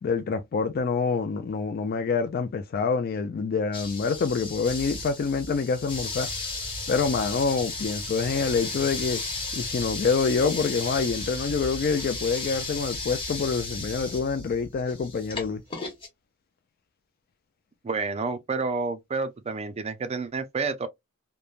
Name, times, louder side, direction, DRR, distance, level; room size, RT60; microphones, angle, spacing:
voice 1, 0.0-6.3 6.9-9.2 9.5-15.6, left 5 dB, 45° left, 0.3 m, -26 dB
sound 1, 3.7-16.1, left 3 dB, 25° left, 0.9 m, -34 dB
voice 2, 17.8-20.9, right 4 dB, 30° right, 0.4 m, -29 dB
3.1 x 2.1 x 2.3 m
head